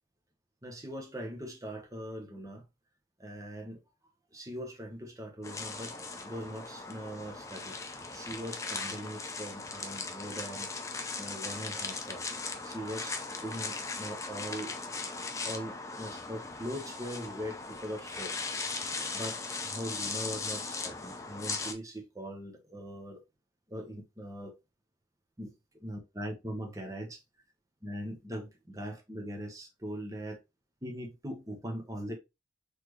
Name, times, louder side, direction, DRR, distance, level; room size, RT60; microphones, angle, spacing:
voice 1, 0.6-2.6 3.2-3.8 4.3-5.9 6.2-7.8 8.1-10.7 11.2-12.2 12.6-13.1 13.4-14.7 15.4-18.4 19.1-19.4 19.7-23.2 23.7-24.5 25.4-25.5 25.8-27.2 27.8-30.4 30.8-32.1, equal, 20° right, 1.0 m, -41 dB
sound 1, 5.4-21.7, left 4 dB, 15° left, 0.5 m, -38 dB
4.1 x 3.3 x 3.1 m
head